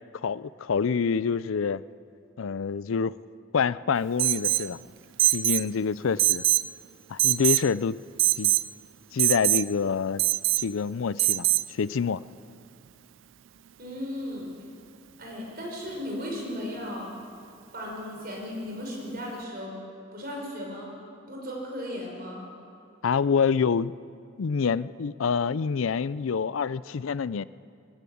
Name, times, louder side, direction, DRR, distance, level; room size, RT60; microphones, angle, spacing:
voice 1, 0.2-1.8 2.4-3.2 3.5-4.8 5.3-6.4 7.1-8.0 8.4-8.5 9.1-10.2 10.6-12.2 23.0-23.9 24.4-27.4, left 6 dB, 85° left, 18 dB, 0.5 m, -26 dB
Alarm, 4.2-4.7 5.2-5.7 6.2-6.7 7.2-7.7 8.2-8.7 9.2-9.6 10.2-10.6 11.2-11.6, right 17 dB, 70° right, 0.4 m, -23 dB
voice 2, 13.8-14.5 15.2-17.1 17.7-19.8 20.1-20.9 21.3-22.5, left 1 dB, 50° right, -1 dB, 5.6 m, -36 dB
20.0 x 15.5 x 8.6 m, 2.4 s
head